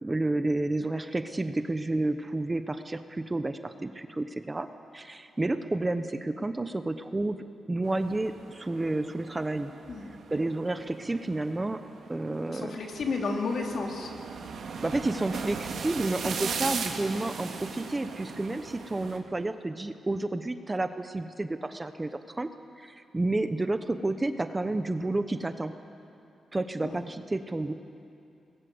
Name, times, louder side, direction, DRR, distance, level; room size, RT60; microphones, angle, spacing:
voice 1, 0.0-4.7 4.9-7.4 7.7-9.7 10.3-11.8 12.1-12.7 14.8-22.5 22.8-25.7 26.5-27.7, right 2 dB, 20° right, 9 dB, 1.0 m, -30 dB
sound 1, 7.8-19.2, right 5 dB, 75° right, 2.5 m, -39 dB
voice 2, 12.5-14.1 26.8-27.0, left 4 dB, 60° left, 1 dB, 3.5 m, -32 dB
25.5 x 20.5 x 7.9 m, 2.6 s
cardioid pair, 115°, 0 cm